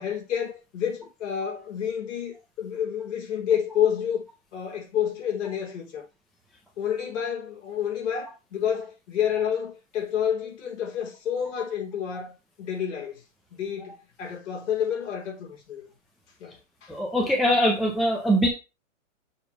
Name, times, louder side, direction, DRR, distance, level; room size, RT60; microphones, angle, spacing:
voice 1, 0.0-4.2 4.5-6.0 6.8-13.2 13.5-15.9 16.4-16.9, left 8 dB, 65° left, 4.3 m, -29 dB
voice 2, 16.9-18.5, equal, ahead, 0.4 m, -22 dB
7.1 x 4.1 x 5.8 m
hypercardioid pair, 145°, 40 cm